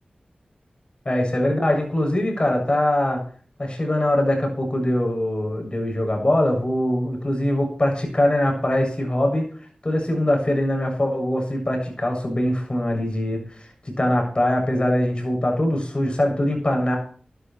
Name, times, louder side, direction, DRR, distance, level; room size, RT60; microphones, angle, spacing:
voice 1, 1.1-3.2 3.6-9.5 9.8-13.4 13.8-17.0, left 1 dB, 35° left, 3 dB, 7.4 m, -22 dB
15.0 x 11.5 x 4.5 m, 0.43 s
wide cardioid pair, 55°, 3 cm